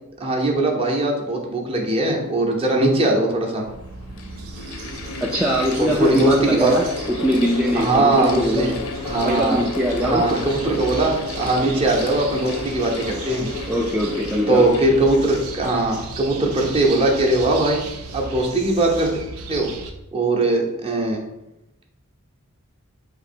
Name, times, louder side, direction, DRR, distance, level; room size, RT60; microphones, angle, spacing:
voice 1, 0.2-3.6 5.8-6.7 7.7-8.7 9.0-9.6 10.0-13.5 14.5-17.9 18.1-19.1 19.5-19.7 20.1-21.2, right 2 dB, 25° right, 0 dB, 0.8 m, -20 dB
Mechanical fan, 2.9-3.0 3.8-16.5, left 3 dB, 75° left, 0.7 m, -33 dB
sound 1, 3.6-19.9, right 3 dB, 80° right, 0.6 m, -36 dB
voice 2, 5.2-8.7 9.2-10.2 13.7-14.7, equal, 5° right, -4 dB, 0.4 m, -22 dB
3.9 x 2.9 x 4.3 m, 0.89 s
head